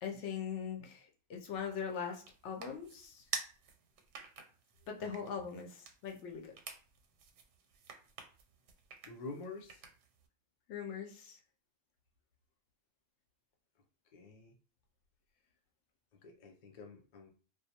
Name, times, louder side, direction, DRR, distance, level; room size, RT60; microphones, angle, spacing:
voice 1, 0.0-3.2 4.9-6.5 10.7-11.4, left 7 dB, 80° left, 2 dB, 0.9 m, -41 dB
sound 1, 1.6-10.3, right 6 dB, 90° right, 0.9 m, -49 dB
voice 2, 9.1-9.9 14.1-14.5 16.2-17.3, left 3 dB, 55° left, 4 dB, 0.5 m, -48 dB
2.4 x 2.1 x 2.7 m, 0.39 s
omnidirectional pair, 1.2 m